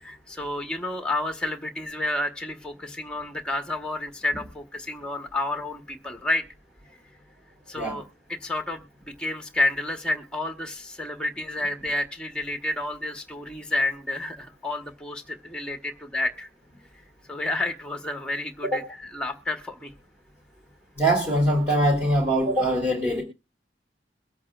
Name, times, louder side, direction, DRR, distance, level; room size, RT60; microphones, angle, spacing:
voice 1, 0.0-6.4 7.7-16.5 17.3-19.9, left 2 dB, 5° left, 5 dB, 1.2 m, -30 dB
voice 2, 21.0-23.2, right 1 dB, 15° right, -4 dB, 3.1 m, -22 dB
23.0 x 8.3 x 2.4 m, 0.27 s
head